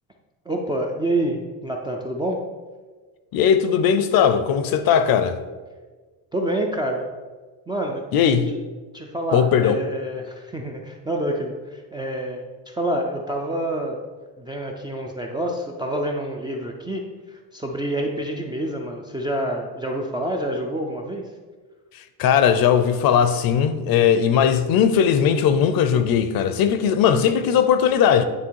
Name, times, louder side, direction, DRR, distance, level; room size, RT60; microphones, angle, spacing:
voice 1, 0.5-2.4 6.3-7.1 7.7-8.0 8.9-14.0 14.4-21.2, right 1 dB, 10° right, 0.3 m, -27 dB
voice 2, 3.3-5.4 8.1-8.5 9.3-9.8 22.2-28.2, left 8 dB, 60° left, 0.6 m, -18 dB
9.6 x 3.4 x 4.6 m
cardioid pair, 165°, 40 cm